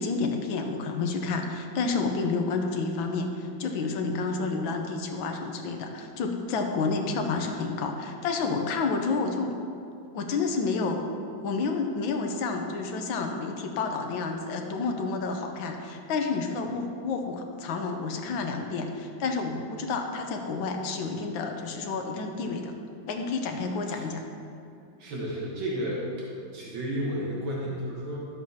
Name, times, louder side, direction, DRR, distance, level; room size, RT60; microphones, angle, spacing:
voice 1, 0.0-9.5 10.1-11.1 11.4-22.7 23.1-24.2, left 4 dB, 85° left, 4 dB, 1.6 m, -30 dB
voice 2, 25.0-28.2, equal, 90° right, -4 dB, 2.0 m, -32 dB
12.0 x 7.8 x 2.8 m, 2.5 s
omnidirectional pair, 2.1 m